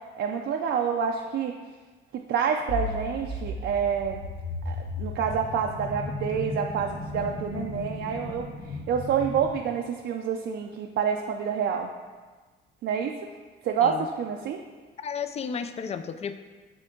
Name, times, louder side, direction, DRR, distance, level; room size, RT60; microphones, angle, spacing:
voice 1, 0.2-1.5 2.3-4.2 4.7-8.5 8.9-11.9 12.8-13.1 13.6-14.6, right 7 dB, 65° right, 2 dB, 0.5 m, -28 dB
sound 1, 2.7-9.6, left 2 dB, 60° left, 1.1 m, -35 dB
voice 2, 15.0-16.4, left 6 dB, 30° left, 10 dB, 0.4 m, -33 dB
7.7 x 3.7 x 3.8 m, 1.4 s
cardioid pair, 90°, 20 cm